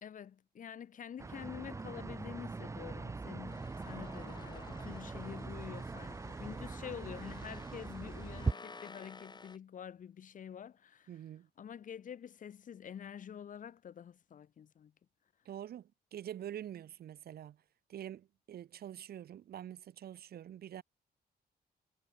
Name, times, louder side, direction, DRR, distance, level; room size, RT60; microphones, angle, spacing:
voice 1, 0.0-11.1 11.6-14.9, left 8 dB, 50° left, 0.8 m, -47 dB
sound 1, 1.2-8.5, right 3 dB, 15° right, 0.6 m, -41 dB
sound 2, 3.5-9.6, left 4 dB, 25° left, 2.7 m, -54 dB
voice 2, 11.1-11.5 15.5-17.6 17.9-20.8, right 11 dB, 65° right, 0.6 m, -46 dB
wide cardioid pair, 165°, 17 cm